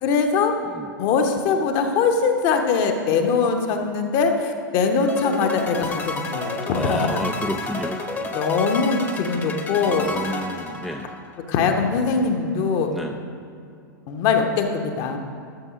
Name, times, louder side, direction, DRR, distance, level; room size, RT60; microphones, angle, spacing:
voice 1, 0.0-0.5 1.0-7.2 8.3-10.5 11.5-13.0 14.1-15.2, left 5 dB, 40° left, 5 dB, 1.0 m, -22 dB
sound 1, 5.1-11.4, left 3 dB, 15° left, 1.0 m, -31 dB
voice 2, 6.7-8.3 9.8-11.1 12.9-13.2, equal, ahead, 3 dB, 0.4 m, -31 dB
12.0 x 7.0 x 5.0 m, 2.4 s
figure-of-eight pair, 95°, 11 cm